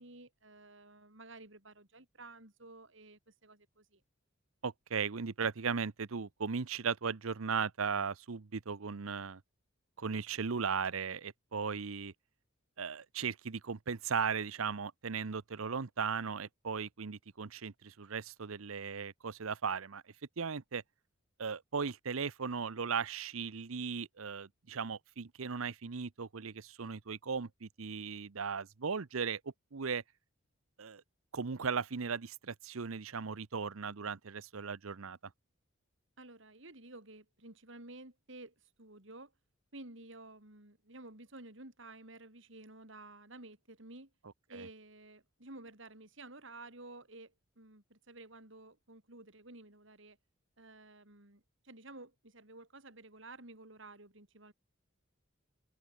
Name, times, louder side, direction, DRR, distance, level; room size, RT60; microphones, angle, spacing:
voice 1, 0.0-4.0 36.2-39.3 39.7-44.1 44.5-50.2 50.6-54.5, right 2 dB, 60° right, 3.8 m, -52 dB
voice 2, 4.6-9.4 10.0-12.1 12.8-20.0 20.4-20.8 21.4-29.4 29.7-30.0 30.8-31.0 31.3-35.2 44.5-44.7, right 5 dB, 80° right, 0.8 m, -37 dB
open air
head